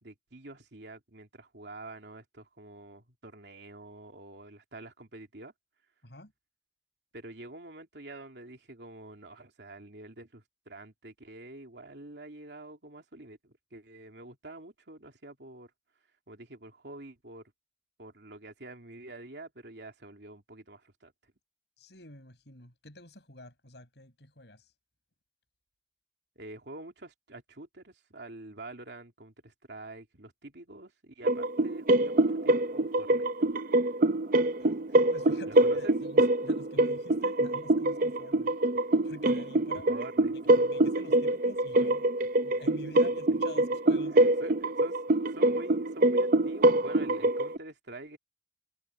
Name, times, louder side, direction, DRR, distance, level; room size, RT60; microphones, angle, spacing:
voice 1, 0.0-5.5 7.1-15.7 16.3-17.5 18.0-21.3 26.3-33.5 35.5-35.9 39.9-40.7 42.8-43.2 44.1-48.2, right 2 dB, 75° right, 3.0 m, -47 dB
voice 2, 21.8-24.7 34.6-38.6 39.0-39.9 40.5-44.2, left 1 dB, 75° left, 7.9 m, -49 dB
sound 1, 31.2-47.6, right 2 dB, 50° right, 0.6 m, -25 dB
head